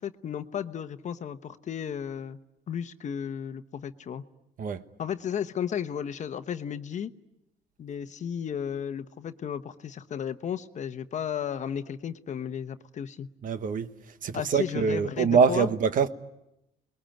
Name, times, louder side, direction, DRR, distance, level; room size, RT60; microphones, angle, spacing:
voice 1, 0.0-2.4 2.7-4.2 5.0-7.1 7.8-13.3 14.3-15.7, left 8 dB, 45° left, 1.1 m, -34 dB
voice 2, 13.4-13.9 14.2-16.1, right 6 dB, 55° right, 1.3 m, -24 dB
29.5 x 21.5 x 9.1 m
cardioid pair, 110°, 17 cm